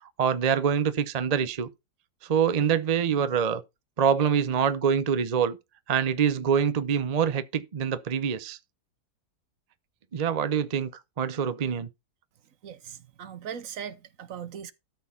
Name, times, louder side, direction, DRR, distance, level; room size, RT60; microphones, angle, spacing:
voice 1, 0.2-1.7 2.3-3.6 4.0-5.6 5.9-8.6 10.1-10.9 11.2-11.9, right 7 dB, 40° right, 0.5 m, -25 dB
voice 2, 12.6-14.7, right 8 dB, 60° right, 1.1 m, -39 dB
13.0 x 4.5 x 5.6 m
omnidirectional pair, 1.7 m